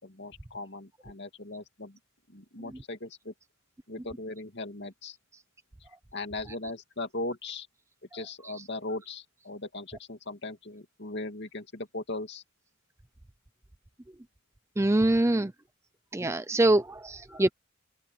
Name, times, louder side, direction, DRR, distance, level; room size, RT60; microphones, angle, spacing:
voice 1, 0.0-2.0 2.3-3.3 3.9-5.2 6.1-7.7 8.1-12.4 15.1-15.4 17.3-17.5, left 2 dB, 50° left, 2.7 m, -39 dB
voice 2, 14.8-15.5 16.1-17.5, right 1 dB, 15° right, 0.5 m, -24 dB
open air
head